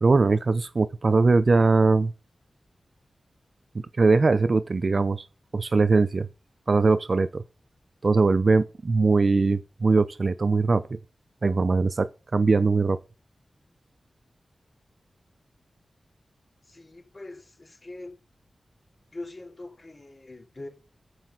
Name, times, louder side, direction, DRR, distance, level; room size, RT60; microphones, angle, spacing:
voice 1, 0.0-2.1 3.7-5.3 5.5-6.3 6.7-7.4 8.0-11.0 11.4-13.0, right 3 dB, 45° right, 0.6 m, -21 dB
voice 2, 16.6-18.2 19.1-20.7, left 2 dB, 35° left, 3.3 m, -42 dB
13.0 x 8.1 x 3.9 m
wide cardioid pair, 135°, 0 cm